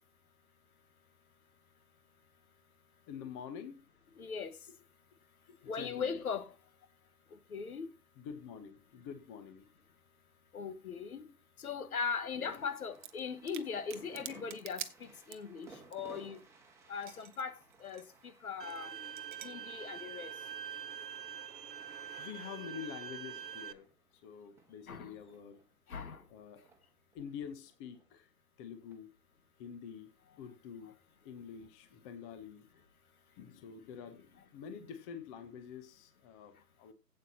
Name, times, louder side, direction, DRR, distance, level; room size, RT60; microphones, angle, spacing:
voice 1, 3.1-3.8 4.2-4.3 5.5-6.1 8.2-9.7 12.3-12.7 22.2-23.9 24.2-25.6 26.3-26.6 27.1-28.3 28.6-29.1 29.6-30.1 30.4-30.9 31.2-32.8 33.4-36.9, left 7 dB, 20° left, 0.9 m, -47 dB
voice 2, 4.2-4.6 5.6-6.5 7.5-7.9 10.5-11.3 11.6-16.4 16.9-18.0 18.4-20.3 22.1-22.4 24.9-25.1 25.9-26.2, left 6 dB, 65° left, 1.6 m, -39 dB
sound 1, 12.5-25.7 26.2-28.1 28.8-29.0, right 4 dB, 5° right, 1.5 m, -60 dB
sound 2, 12.9-13.2 13.5-15.6 15.9-17.4 17.7-18.0 18.6-18.8 19.2-19.5, right 12 dB, 30° right, 0.9 m, -46 dB
Bowed string instrument, 18.6-23.7, right 8 dB, 85° right, 1.1 m, -45 dB
16.0 x 8.6 x 2.8 m
figure-of-eight pair, 135°, 48 cm